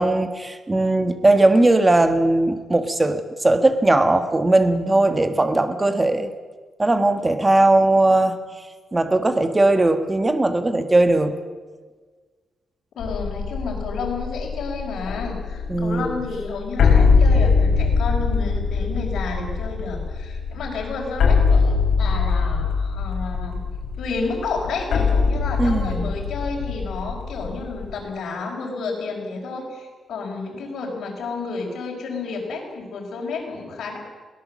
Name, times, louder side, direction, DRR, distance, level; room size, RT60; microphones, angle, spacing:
voice 1, 0.0-6.3 6.8-8.4 8.9-11.3 15.7-16.2 25.6-26.1, right 2 dB, 15° right, 8 dB, 1.4 m, -18 dB
voice 2, 12.9-23.6 24.0-34.0, left 4 dB, 85° left, -3 dB, 4.9 m, -31 dB
sound 1, 13.0-27.9, left 4 dB, 70° left, 5.5 m, -22 dB
21.5 x 17.5 x 7.5 m, 1.4 s
wide cardioid pair, 165°, 0 cm